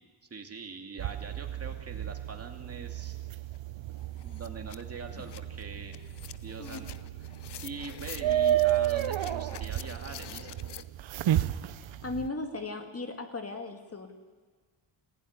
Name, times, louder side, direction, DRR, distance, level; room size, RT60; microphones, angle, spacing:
voice 1, 0.3-3.2 3.9-4.0 4.2-5.9 6.4-6.9 7.2-7.3 7.6-10.6, right 4 dB, 30° right, 4 dB, 2.5 m, -43 dB
sound 1, 1.0-12.3, right 12 dB, 75° right, 1.0 m, -32 dB
sound 2, 3.5-3.6 3.9-10.8, left 10 dB, 60° left, 0.9 m, -48 dB
voice 2, 12.0-14.1, left 3 dB, 30° left, 5 dB, 2.2 m, -37 dB
28.5 x 16.5 x 9.8 m, 1.5 s
wide cardioid pair, 150°, 47 cm